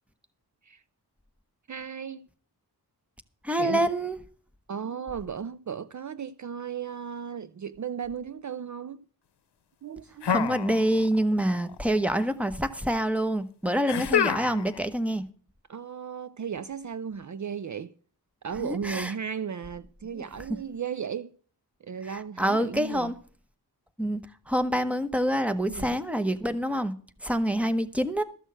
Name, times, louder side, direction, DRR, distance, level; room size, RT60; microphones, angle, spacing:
voice 1, 1.7-2.2 3.6-3.9 4.7-9.0 9.8-10.9 15.7-17.9 18.4-21.3 21.8-23.1 25.6-26.0, right 7 dB, 50° right, 0.5 m, -35 dB
voice 2, 3.4-4.2 10.3-15.2 18.6-19.1 20.2-20.3 22.1-23.1 24.0-24.2 24.5-26.9 27.2-28.2, equal, 5° right, 1.0 m, -26 dB
sound 1, 10.2-11.2 11.5-12.2 13.9-14.8, left 8 dB, 85° left, 0.8 m, -28 dB
13.5 x 6.3 x 7.6 m
wide cardioid pair, 85°, 39 cm